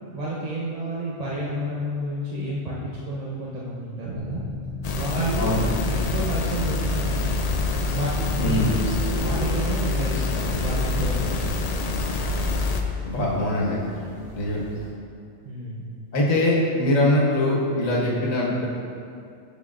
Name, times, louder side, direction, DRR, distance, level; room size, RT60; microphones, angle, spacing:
voice 1, 0.1-4.4 4.9-7.3 7.8-8.1 8.4-8.7 9.2-11.5 15.4-15.8, equal, 35° right, -6 dB, 0.8 m, -30 dB
sound 1, 4.0-9.4, left 2 dB, 55° right, 1.6 m, -34 dB
sound 2, 4.8-12.8, left 3 dB, 65° left, 0.4 m, -26 dB
sound 3, 7.5-14.9, equal, 45° left, 1.5 m, -43 dB
voice 2, 8.4-8.7 13.0-13.8 14.3-14.6 16.1-18.7, left 1 dB, 85° left, -4 dB, 1.7 m, -22 dB
10.5 x 6.3 x 2.5 m, 2.4 s
omnidirectional pair, 1.3 m